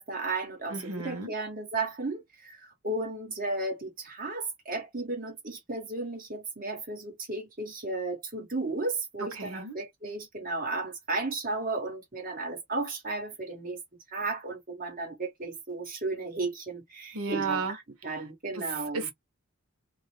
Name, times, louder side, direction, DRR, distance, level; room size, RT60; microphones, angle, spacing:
voice 1, 0.0-13.8 14.1-19.1, right 3 dB, 40° right, 1.2 m, -34 dB
voice 2, 0.7-1.3 9.4-9.8 17.1-17.8 18.5-18.6 18.9-19.1, right 4 dB, 85° right, 0.8 m, -33 dB
2.4 x 2.0 x 3.1 m
head